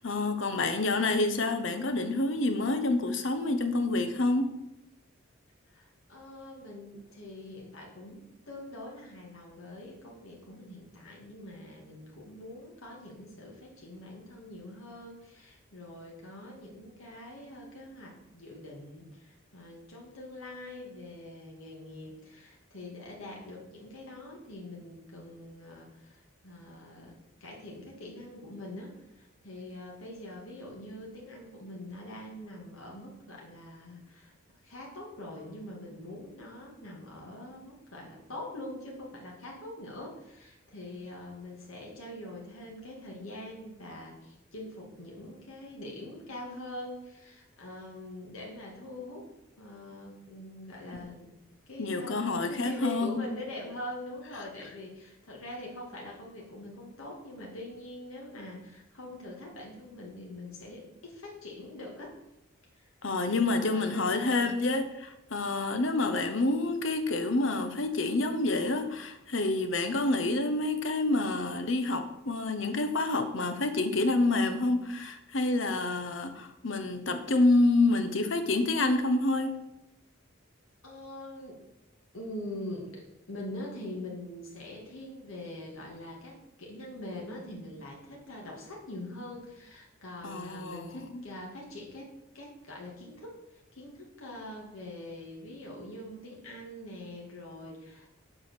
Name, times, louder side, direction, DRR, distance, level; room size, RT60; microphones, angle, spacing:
voice 1, 0.0-4.5 51.8-53.2 63.0-79.6 90.2-91.2, left 2 dB, 65° left, 8 dB, 0.9 m, -28 dB
voice 2, 5.7-27.1 27.4-34.3 34.6-49.3 49.6-51.3 51.7-62.2 62.7-63.0 63.5-64.7 80.8-81.6 82.1-98.2, left 1 dB, 80° left, -2 dB, 2.0 m, -44 dB
7.1 x 5.0 x 6.7 m, 0.87 s
head